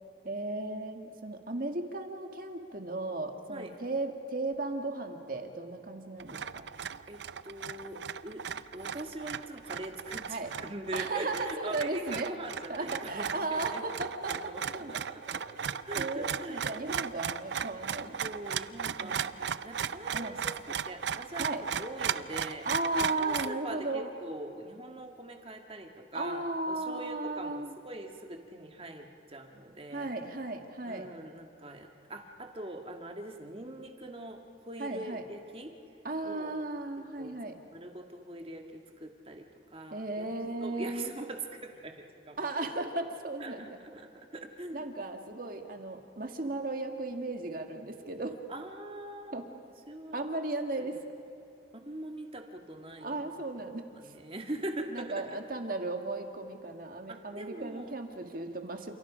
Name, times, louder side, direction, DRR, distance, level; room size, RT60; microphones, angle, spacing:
voice 1, 0.2-6.7 10.3-10.5 10.9-12.3 12.7-15.0 15.9-18.2 19.0-19.2 20.1-20.4 21.4-21.7 22.7-24.1 26.1-27.7 29.9-31.1 34.8-35.2 36.0-37.6 39.9-41.1 42.4-43.8 44.7-48.4 49.3-49.4 50.1-51.0 53.0-53.8 54.9-58.9, right 2 dB, 45° right, 4 dB, 1.9 m, -35 dB
sound 1, 6.2-23.5, right 7 dB, 65° right, 0.5 m, -36 dB
voice 2, 7.1-8.4 8.7-17.1 18.2-22.7 23.0-30.1 30.9-35.7 36.2-36.6 37.2-37.3 37.7-40.3 40.6-42.4 43.4-44.9 48.5-49.6 49.9-50.2 50.8-51.0 51.7-53.2 53.6-53.7 53.9-55.4 57.1-57.9, right 1 dB, 30° right, 4 dB, 1.8 m, -43 dB
29.5 x 28.0 x 5.1 m, 2.8 s
head